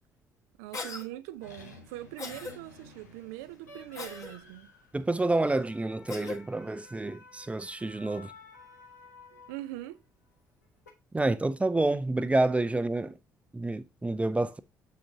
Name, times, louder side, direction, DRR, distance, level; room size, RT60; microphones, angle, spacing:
voice 1, 0.6-4.7 9.3-10.0, right 15 dB, 70° right, 0.5 m, -42 dB
Cough, 0.7-1.1 2.2-2.5 3.9-4.3 6.1-6.4, left 3 dB, 35° left, 1.9 m, -38 dB
sound 1, 1.4-9.9 10.6-10.9, left 3 dB, 80° left, 1.2 m, -52 dB
voice 2, 4.9-8.3 11.1-13.2 13.5-14.6, right 2 dB, 15° right, 0.7 m, -28 dB
7.6 x 7.4 x 2.7 m
figure-of-eight pair, 45°, 9 cm